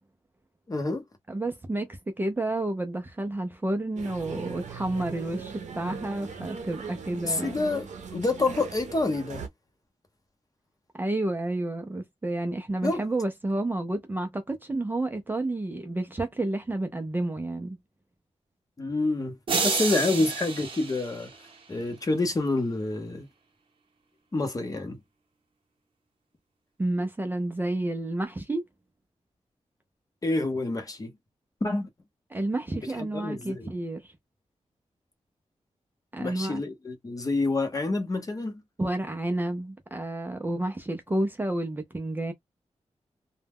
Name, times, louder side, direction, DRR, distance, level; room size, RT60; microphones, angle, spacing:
voice 1, 0.7-1.0 7.2-9.4 12.8-13.0 18.8-21.3 21.7-23.3 24.3-25.0 30.2-31.1 31.6-31.9 33.0-33.7 36.2-38.6, left 2 dB, 30° left, 0.7 m, -28 dB
voice 2, 1.3-7.5 11.0-17.8 26.8-28.6 32.3-34.1 36.1-36.6 38.8-42.3, right 2 dB, 15° right, 0.4 m, -30 dB
sound 1, 4.0-9.5, right 6 dB, 90° right, 0.5 m, -40 dB
sound 2, 19.5-21.8, right 4 dB, 50° right, 0.7 m, -30 dB
2.1 x 2.1 x 3.4 m
wide cardioid pair, 165°, 12 cm